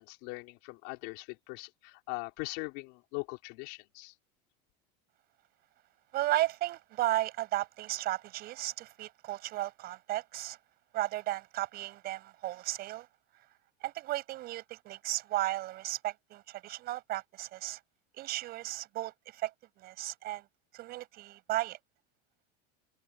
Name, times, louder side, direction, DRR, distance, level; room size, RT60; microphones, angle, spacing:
voice 1, 0.0-4.1, left 28 dB, 65° left, 4.9 m, -41 dB
voice 2, 6.1-10.6 10.9-13.1 13.8-17.8 18.1-20.5 20.7-21.8, right 16 dB, 50° right, 8.0 m, -34 dB
supercardioid pair, 130°, 21 cm